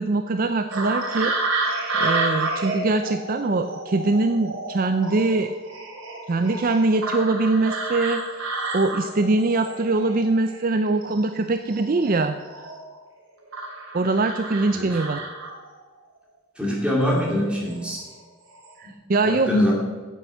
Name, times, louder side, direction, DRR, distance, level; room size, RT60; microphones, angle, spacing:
voice 1, 0.0-1.3 2.0-5.5 6.3-12.3 13.9-15.2 18.8-19.5, right 3 dB, 40° right, 8 dB, 0.4 m, -22 dB
sound 1, 0.7-10.7 11.0-13.0 13.5-15.8 17.0-17.2 17.7-18.1 18.4-18.7, right 3 dB, 60° right, 3.0 m, -30 dB
voice 2, 16.6-18.0 18.8-18.9 19.2-19.7, left 1 dB, 5° right, -4 dB, 2.8 m, -23 dB
9.4 x 7.9 x 7.2 m, 1.4 s
head